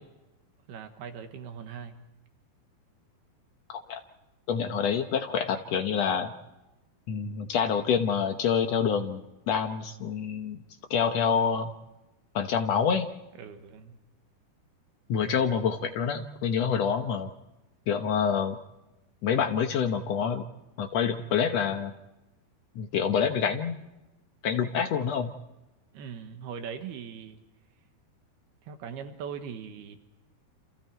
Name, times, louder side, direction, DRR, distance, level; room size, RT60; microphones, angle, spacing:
voice 1, 0.7-2.0 13.4-14.0 25.9-27.4 28.6-30.0, right 7 dB, 80° right, 6 dB, 3.3 m, -40 dB
voice 2, 4.5-6.3 7.1-10.6 10.9-11.7 12.3-13.1 15.1-17.3 17.9-18.6 19.2-20.4 20.8-21.9 22.7-23.8 24.4-25.3, left 7 dB, 85° left, 5 dB, 1.4 m, -27 dB
29.5 x 28.0 x 4.6 m, 1.0 s
omnidirectional pair, 4.6 m